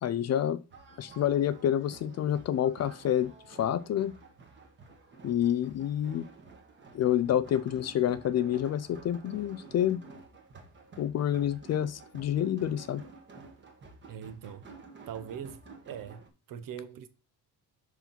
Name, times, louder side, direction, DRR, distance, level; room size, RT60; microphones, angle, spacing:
voice 1, 0.0-0.6 1.0-4.1 5.2-6.3 6.9-10.0 11.0-13.0, left 10 dB, 40° left, 0.4 m, -28 dB
sound 1, 0.7-16.3, right 3 dB, 25° right, 1.4 m, -52 dB
voice 2, 14.1-14.7 15.1-16.2 16.5-17.1, right 8 dB, 50° right, 0.9 m, -41 dB
5.3 x 4.7 x 5.8 m
cardioid pair, 155°, 41 cm